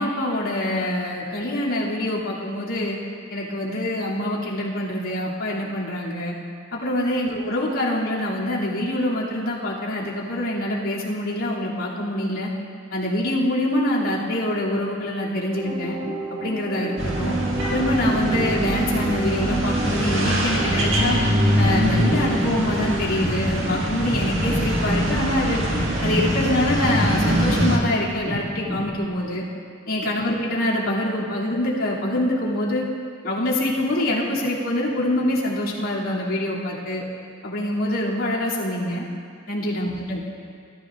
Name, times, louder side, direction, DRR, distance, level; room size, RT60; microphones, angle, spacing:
voice 1, 0.0-3.0 3.3-6.3 6.7-12.5 12.9-16.0 16.3-17.4 17.7-21.2 21.6-25.6 26.0-29.4 29.9-32.9 33.2-37.0 37.4-39.1 39.5-40.3, left 1 dB, 85° left, -7 dB, 2.8 m, -25 dB
sound 1, 15.5-23.0, right 2 dB, 35° right, 2.4 m, -31 dB
sound 2, 17.0-27.8, equal, 65° right, 1.8 m, -23 dB
sound 3, 22.0-29.0, equal, 10° right, 2.0 m, -32 dB
19.5 x 13.0 x 2.5 m, 2.2 s
head